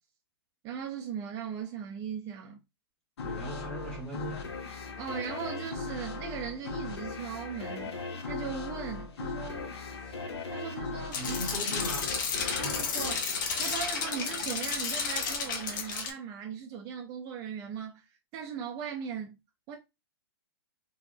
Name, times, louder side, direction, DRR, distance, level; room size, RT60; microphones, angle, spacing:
voice 1, 0.6-2.6 5.0-8.0 8.2-10.2 10.5-11.4 12.6-13.3 13.6-18.1 18.3-19.4 19.7-19.8, right 7 dB, 25° right, 0.4 m, -38 dB
sound 1, 3.2-14.4, left 4 dB, 85° left, 0.7 m, -38 dB
voice 2, 3.2-4.6 11.1-12.9, right 1 dB, 5° left, 0.8 m, -40 dB
sound 2, 11.1-16.1, left 5 dB, 50° left, 0.7 m, -32 dB
3.3 x 2.0 x 2.5 m
hypercardioid pair, 150°, 14 cm